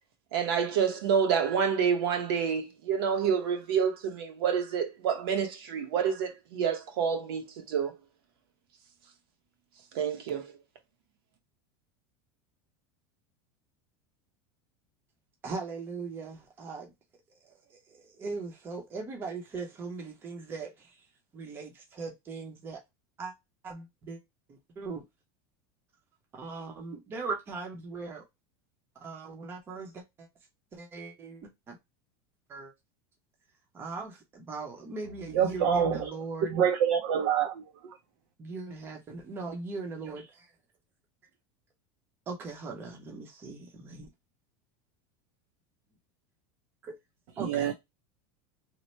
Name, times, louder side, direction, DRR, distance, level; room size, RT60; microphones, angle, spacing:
voice 1, 0.3-7.9 9.9-10.5, right 7 dB, 75° right, 0.9 m, -28 dB
voice 2, 15.4-16.9 17.4-21.0 21.3-22.8 23.2-23.3 23.6-24.2 24.5-25.0 26.3-28.2 29.0-30.3 30.7-31.8 32.5-32.7 33.7-36.5 38.4-40.5 42.3-44.1 46.8-47.0 47.4-47.7, right 4 dB, 15° right, 0.7 m, -39 dB
voice 3, 35.3-36.1 36.5-37.6 47.5-47.7, right 8 dB, 55° right, 0.6 m, -26 dB
3.1 x 2.1 x 4.1 m
supercardioid pair, 175°, 13 cm